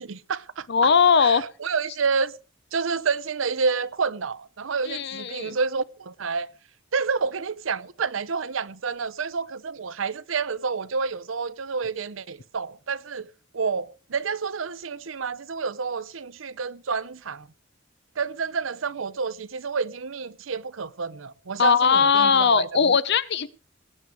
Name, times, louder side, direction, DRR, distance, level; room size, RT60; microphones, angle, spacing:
voice 1, 0.0-0.7 1.2-2.3 2.7-6.5 6.9-13.3 13.5-17.5 18.2-23.0, right 5 dB, 85° right, 0.7 m, -29 dB
voice 2, 0.7-1.4 4.9-5.5 21.6-23.5, left 6 dB, 60° left, 0.7 m, -19 dB
19.0 x 8.3 x 4.8 m
head